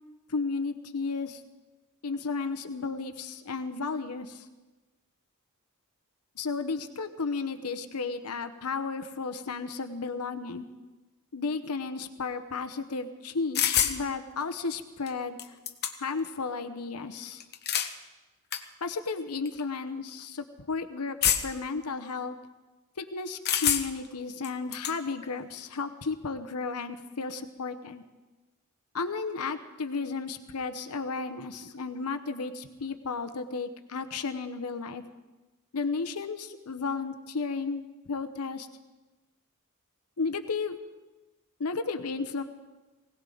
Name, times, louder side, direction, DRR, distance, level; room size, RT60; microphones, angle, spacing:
voice 1, 0.3-1.4 2.0-4.5 6.4-10.6 11.3-15.6 16.0-17.4 18.8-22.4 23.0-28.0 28.9-35.0 35.7-38.7 40.2-40.8 41.6-42.4, left 4 dB, 85° left, 8 dB, 0.9 m, -33 dB
sound 1, 13.6-14.0 15.1-15.2 15.4-16.2 17.4-17.9 18.5-18.6 19.5-19.6 21.2-21.7 23.5-24.1 24.4-25.0, left 9 dB, 50° left, 1.0 m, -26 dB
20.5 x 17.5 x 3.9 m, 1.2 s
head